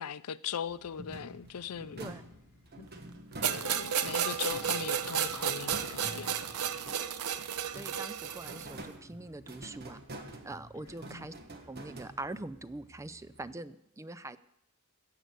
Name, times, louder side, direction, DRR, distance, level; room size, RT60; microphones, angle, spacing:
voice 1, 0.0-2.1 2.8-2.9 3.4-6.4 11.1-11.3, left 8 dB, 85° left, 0.5 m, -39 dB
sound 1, 0.6-13.5, equal, 60° left, 4.5 m, -63 dB
sound 2, 1.0-4.0 4.5-7.3 7.6-12.6, right 1 dB, 45° right, 1.5 m, -48 dB
sound 3, 3.4-8.8, right 8 dB, 85° right, 0.8 m, -33 dB
voice 2, 7.7-10.0 10.4-11.3 11.7-14.4, right 2 dB, 15° right, 0.4 m, -43 dB
15.5 x 6.6 x 8.1 m
head